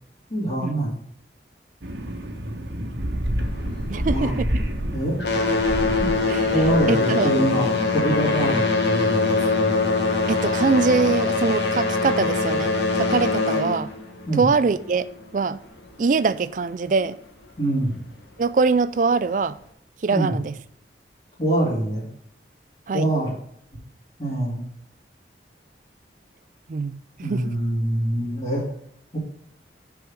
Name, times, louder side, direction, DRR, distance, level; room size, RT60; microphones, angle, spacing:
voice 1, 0.3-0.9 4.1-4.4 4.9-5.1 6.0-6.1 6.5-9.8 14.3-14.4 17.6-17.9 20.1-20.4 21.4-22.1 22.9-23.3 24.2-24.6 27.2-28.6 29.1-29.2, right 1 dB, 35° left, 2.8 m, -24 dB
sound 1, 1.8-6.9, equal, 85° right, 1.2 m, -28 dB
sound 2, 3.4-4.7 5.0-15.3 16.2-16.3 17.0-17.1 17.7-17.8, left 3 dB, 80° left, 1.3 m, -23 dB
voice 2, 3.9-4.5 6.3-6.5 6.9-7.3 10.3-13.9 14.3-15.1 15.3-15.6 16.0-17.2 18.4-19.6 20.0-20.6 22.9-23.1 26.7-27.0 27.3-27.5, right 4 dB, 45° right, 0.4 m, -23 dB
6.3 x 4.9 x 6.1 m
head